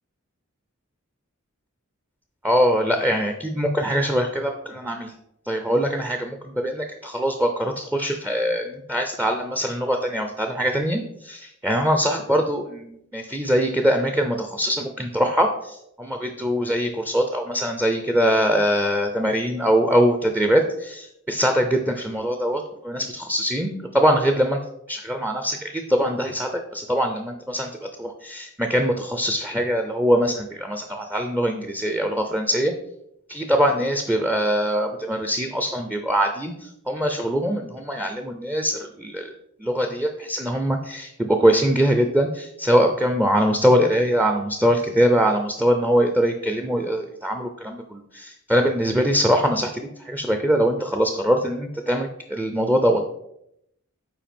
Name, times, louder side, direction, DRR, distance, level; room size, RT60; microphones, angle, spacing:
voice 1, 2.4-5.1 5.5-24.6 24.9-27.7 28.0-32.7 33.3-36.5 36.9-39.3 39.6-53.0, equal, 10° right, 5 dB, 0.5 m, -22 dB
7.6 x 4.8 x 5.2 m, 0.78 s
head